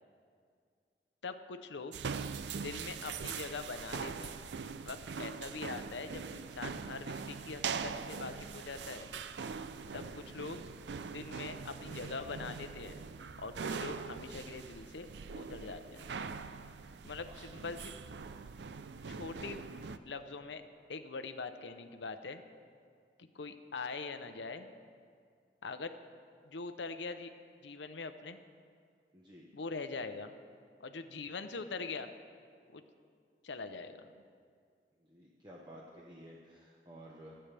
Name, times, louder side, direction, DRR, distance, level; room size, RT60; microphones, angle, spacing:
voice 1, 1.2-1.9 2.5-4.4 4.8-9.1 9.9-10.6 11.1-12.9 13.4-15.1 15.3-16.1 17.0-17.9 19.1-19.6 20.0-20.6 20.9-22.4 23.2-24.7 25.6-25.9 26.4-27.3 27.6-28.4 29.5-30.3 30.8-32.1 32.7-32.8 33.4-34.1, left 4 dB, 90° left, 9 dB, 0.8 m, -43 dB
sound 1, 1.9-20.0, right 5 dB, 75° right, 0.5 m, -42 dB
voice 2, 29.1-29.4 35.0-37.3, equal, 25° right, -2 dB, 1.0 m, -53 dB
26.0 x 8.9 x 3.4 m, 2.2 s
head